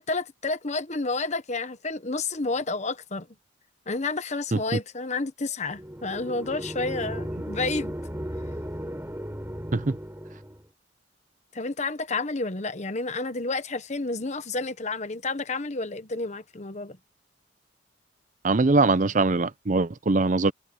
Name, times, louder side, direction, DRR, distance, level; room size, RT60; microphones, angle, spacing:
voice 1, 0.0-3.3 3.9-7.9 11.5-17.0, left 3 dB, 40° left, 1.1 m, -30 dB
sound 1, 5.7-10.6, equal, 15° right, 5.3 m, -35 dB
voice 2, 18.4-20.5, right 3 dB, 40° right, 0.6 m, -22 dB
head